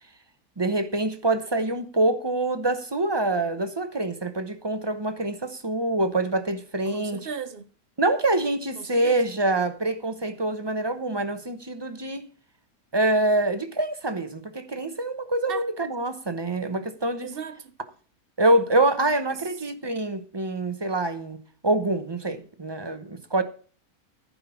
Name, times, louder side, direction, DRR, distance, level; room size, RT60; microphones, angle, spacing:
voice 1, 0.6-7.2 8.0-12.2 12.9-17.3 18.4-21.4 21.6-23.4, right 2 dB, 20° right, 0.8 m, -25 dB
voice 2, 6.9-7.7 8.7-9.2 15.5-15.7 17.2-17.7 19.3-19.7, right 6 dB, 45° right, 0.9 m, -37 dB
15.0 x 5.7 x 5.8 m
omnidirectional pair, 1.6 m